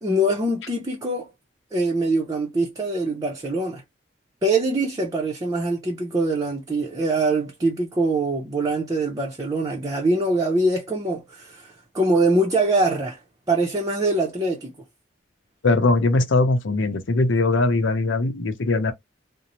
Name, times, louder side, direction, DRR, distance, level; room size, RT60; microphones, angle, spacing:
voice 1, 0.0-1.3 1.7-3.8 4.4-13.2 13.5-14.7, right 2 dB, 20° right, 0.5 m, -23 dB
voice 2, 15.6-18.9, left 2 dB, 90° left, 0.7 m, -20 dB
2.6 x 2.0 x 2.9 m
head